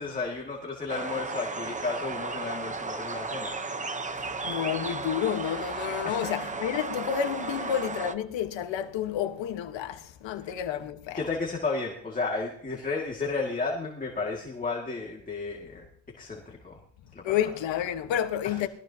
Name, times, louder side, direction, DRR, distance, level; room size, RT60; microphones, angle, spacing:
voice 1, 0.0-3.5 6.0-6.3 10.4-10.5 11.2-15.9 16.2-16.8 17.1-17.5 18.4-18.6, left 3 dB, 20° left, 2.2 m, -33 dB
sound 1, 0.9-8.1, right 3 dB, 15° right, 0.9 m, -34 dB
voice 2, 4.4-11.2 17.2-18.7, left 9 dB, 80° left, 1.4 m, -30 dB
20.5 x 15.0 x 2.9 m
cardioid pair, 160°, 44 cm